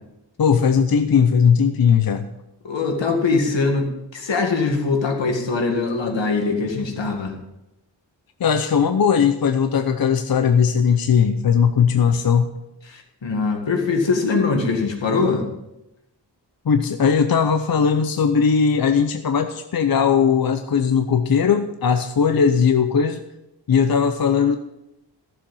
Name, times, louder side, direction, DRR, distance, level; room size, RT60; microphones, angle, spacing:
voice 1, 0.4-2.3 8.4-12.5 16.7-23.2 23.7-24.6, left 6 dB, 55° left, 8 dB, 0.7 m, -18 dB
voice 2, 2.6-7.4 12.9-15.5, left 4 dB, 80° left, 3 dB, 2.1 m, -22 dB
14.5 x 7.2 x 5.5 m, 0.89 s
wide cardioid pair, 125°, 44 cm